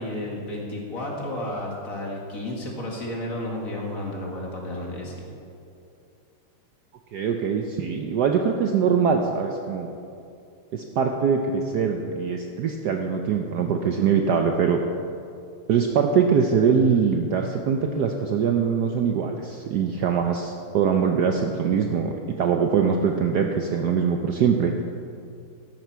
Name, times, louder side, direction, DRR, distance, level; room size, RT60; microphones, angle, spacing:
voice 1, 0.0-5.1, left 1 dB, 40° left, -1 dB, 2.1 m, -32 dB
voice 2, 7.1-9.9 10.7-14.8 15.7-24.7, right 6 dB, 65° right, 4 dB, 1.0 m, -23 dB
13.5 x 11.0 x 4.6 m, 2.5 s
omnidirectional pair, 2.3 m